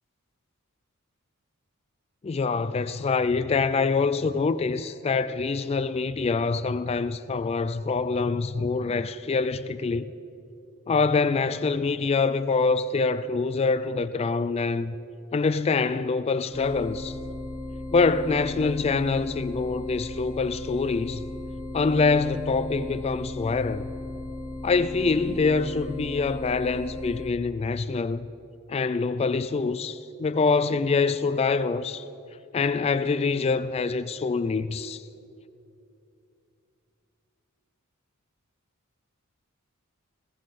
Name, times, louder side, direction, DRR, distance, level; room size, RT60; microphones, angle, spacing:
voice 1, 2.2-10.1 10.9-14.9 15.3-17.2 17.9-21.2 21.7-23.9 24.6-28.3 28.7-32.0 32.5-35.0, left 4 dB, 30° left, 0.3 m, -25 dB
sound 1, 16.5-27.3, left 2 dB, 5° right, 1.1 m, -36 dB
21.5 x 15.5 x 4.2 m
head